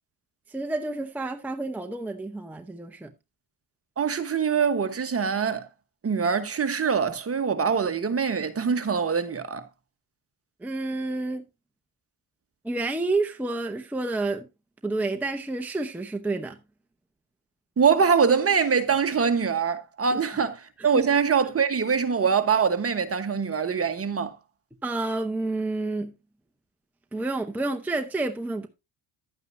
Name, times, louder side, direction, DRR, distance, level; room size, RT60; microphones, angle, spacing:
voice 1, 0.5-3.1 10.6-11.4 12.6-14.5 14.8-16.6 20.0-20.2 20.9-21.0 24.8-26.1 27.1-28.7, right 2 dB, 5° right, 0.8 m, -29 dB
voice 2, 4.0-5.7 6.0-9.6 17.8-24.4, right 6 dB, 30° right, 1.2 m, -24 dB
11.0 x 9.0 x 2.6 m
cardioid pair, 105°, 48 cm